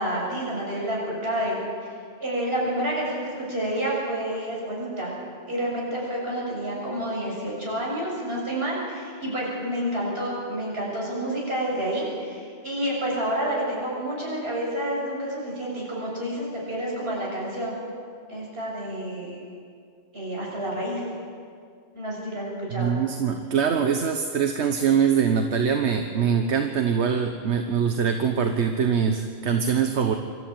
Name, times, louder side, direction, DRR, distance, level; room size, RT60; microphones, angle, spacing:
voice 1, 0.0-1.6 2.2-5.1 5.5-17.8 18.3-19.4 20.1-21.0 21.9-23.0, right 1 dB, 65° right, -4 dB, 7.2 m, -29 dB
voice 2, 22.7-30.1, right 7 dB, 80° right, 5 dB, 1.4 m, -23 dB
25.0 x 14.0 x 8.9 m, 2.2 s
omnidirectional pair, 1.1 m